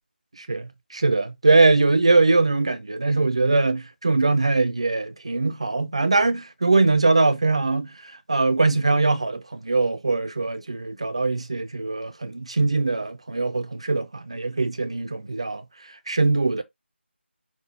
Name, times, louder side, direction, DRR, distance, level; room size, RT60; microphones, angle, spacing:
voice 1, 0.4-15.6 16.1-16.6, right 3 dB, 30° right, 0.4 m, -22 dB
5.7 x 2.3 x 4.0 m
figure-of-eight pair, 165°, 7 cm